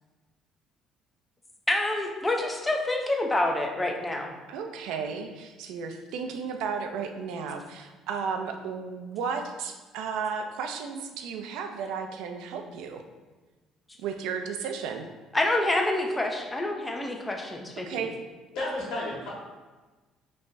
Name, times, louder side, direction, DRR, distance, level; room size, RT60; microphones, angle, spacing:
voice 1, 1.7-4.3 15.3-17.9, left 1 dB, 10° left, 1 dB, 0.5 m, -27 dB
voice 2, 4.5-13.0 14.0-15.1 17.8-18.1, right 6 dB, 80° right, 6 dB, 0.5 m, -34 dB
voice 3, 18.5-19.3, left 1 dB, 70° left, -5 dB, 1.5 m, -32 dB
5.3 x 3.2 x 2.6 m, 1.3 s
cardioid pair, 175°, 0 cm